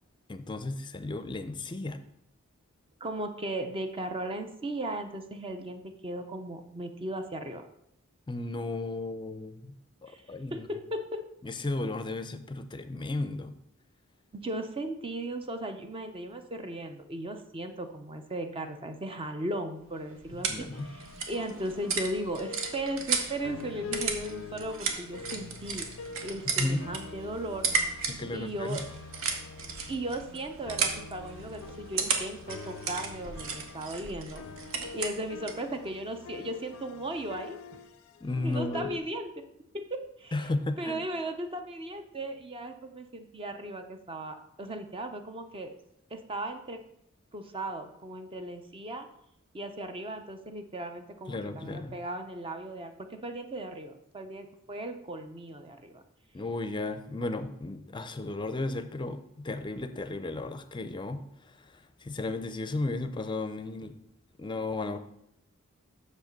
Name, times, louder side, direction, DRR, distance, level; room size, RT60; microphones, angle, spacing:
voice 1, 0.3-2.0 8.3-9.7 10.0-10.7 11.4-13.5 20.3-20.9 26.6-26.8 28.1-28.8 38.2-38.9 40.3-41.1 51.3-52.0 56.3-61.2 62.0-63.9 64.4-65.0, left 2 dB, 20° left, 10 dB, 0.5 m, -34 dB
voice 2, 3.0-7.6 10.1-10.2 10.5-11.2 14.3-25.9 26.2-27.7 28.3-28.8 29.9-34.4 34.9-37.6 38.4-39.3 39.7-40.5 40.8-45.8 46.1-46.8 47.3-49.1 49.5-56.0, right 1 dB, 25° right, 7 dB, 0.6 m, -37 dB
sound 1, 19.8-35.7, right 5 dB, 65° right, 1.1 m, -35 dB
sound 2, 20.7-26.5 26.8-39.0, left 5 dB, 75° left, 0.5 m, -45 dB
6.5 x 5.2 x 5.2 m, 0.73 s
head